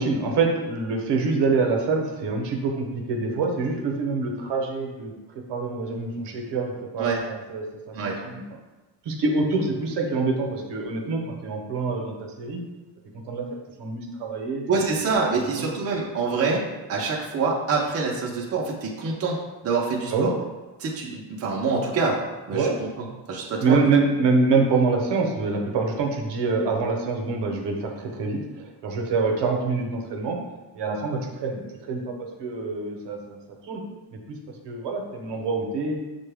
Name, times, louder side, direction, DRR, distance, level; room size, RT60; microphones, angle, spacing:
voice 1, 0.0-8.4 9.0-12.6 13.3-13.5 13.8-14.6 15.4-15.7 20.1-20.3 22.5-22.8 23.6-30.4 30.7-33.4 33.6-33.8 34.1-35.9, right 4 dB, 70° right, 1 dB, 0.8 m, -26 dB
voice 2, 14.7-16.6 16.9-19.4 19.6-20.3 20.8-22.2 22.5-23.9, right 4 dB, 35° right, -3 dB, 0.5 m, -26 dB
6.6 x 2.2 x 3.3 m, 1.2 s
cardioid pair, 175°, 43 cm